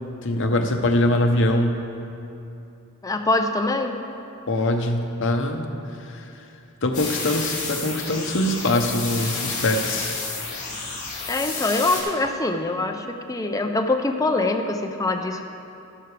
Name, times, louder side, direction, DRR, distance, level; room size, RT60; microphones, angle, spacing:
voice 1, 0.2-1.8 4.5-5.7 6.1-6.2 6.8-10.1, left 1 dB, 55° left, 4 dB, 0.8 m, -23 dB
voice 2, 3.0-3.9 11.3-15.4, left 2 dB, 15° left, 5 dB, 0.5 m, -24 dB
sound 1, 6.9-12.0, left 4 dB, 35° left, 2.6 m, -30 dB
12.5 x 11.5 x 3.3 m, 2.8 s
head